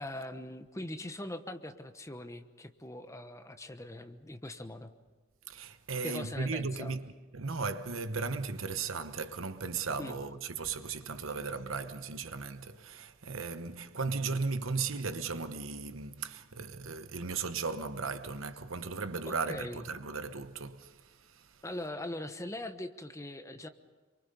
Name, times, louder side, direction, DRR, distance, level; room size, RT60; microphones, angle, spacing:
voice 1, 0.0-4.9 6.0-6.9 10.0-10.2 19.3-20.0 21.6-23.7, left 1 dB, 15° left, 1.1 m, -41 dB
voice 2, 5.5-21.5, right 4 dB, 70° right, 1.1 m, -36 dB
27.0 x 24.0 x 5.5 m
head